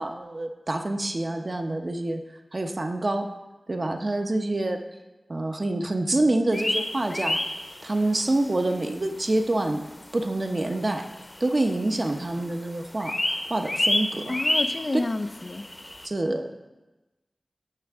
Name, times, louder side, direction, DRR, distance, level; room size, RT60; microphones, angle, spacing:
voice 1, 0.0-2.2 2.5-3.3 3.7-4.8 5.3-7.4 7.8-9.9 10.1-11.0 11.4-13.1 13.5-14.4 16.0-16.5, right 2 dB, 50° right, 4 dB, 0.8 m, -26 dB
sound 1, 6.5-8.2 8.6-8.7 9.2-9.3 10.0-10.1 10.3-10.4 10.6-11.8 12.1-12.4 12.7-16.1, left 1 dB, 35° left, 1.0 m, -29 dB
voice 2, 14.3-15.6, left 2 dB, 50° left, 9 dB, 0.5 m, -30 dB
12.5 x 5.9 x 3.6 m, 1.1 s
wide cardioid pair, 45°, 0 cm